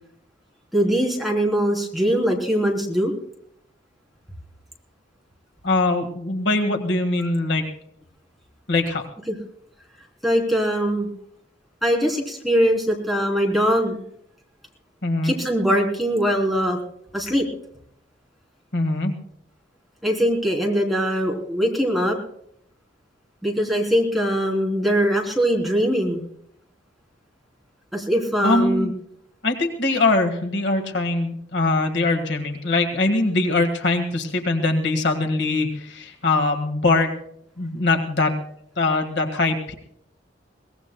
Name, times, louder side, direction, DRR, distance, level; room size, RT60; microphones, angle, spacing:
voice 1, 0.7-3.1 9.3-9.4 10.2-11.1 11.8-14.0 15.2-16.8 17.1-17.4 20.0-22.2 23.4-26.3 27.9-28.9, equal, ahead, -1 dB, 3.3 m, -21 dB
voice 2, 5.6-7.6 8.7-9.0 15.0-15.3 18.7-19.1 28.4-28.9 29.4-37.1 37.6-38.4 38.8-39.7, left 2 dB, 65° left, 4 dB, 1.7 m, -22 dB
23.0 x 18.5 x 2.2 m, 0.70 s
head